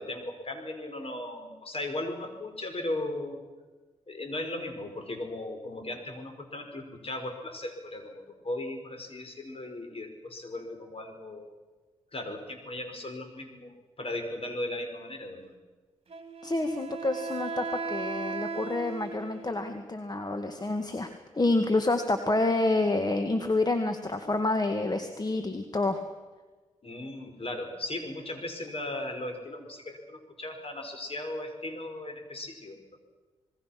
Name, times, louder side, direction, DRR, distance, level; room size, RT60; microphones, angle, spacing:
voice 1, 0.0-3.4 4.1-11.5 12.1-15.5 26.8-32.8, left 1 dB, 45° left, 5 dB, 5.5 m, -37 dB
Wind instrument woodwind instrument, 16.1-19.7, right 4 dB, 45° right, 2.5 m, -36 dB
voice 2, 16.4-26.0, left 2 dB, 30° left, 7 dB, 2.0 m, -28 dB
27.0 x 20.5 x 6.0 m, 1.3 s
supercardioid pair, 50°, 14 cm